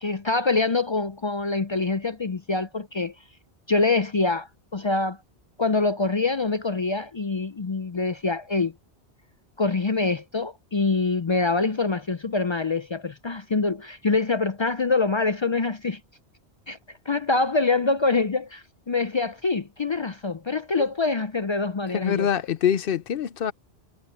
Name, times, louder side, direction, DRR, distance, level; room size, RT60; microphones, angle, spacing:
voice 1, 0.0-3.1 3.7-5.2 5.6-8.7 9.6-16.0 16.7-16.8 17.1-22.3, left 3 dB, 40° left, 0.4 m, -25 dB
voice 2, 21.9-23.5, left 8 dB, 60° left, 0.8 m, -25 dB
omnidirectional pair, 1.1 m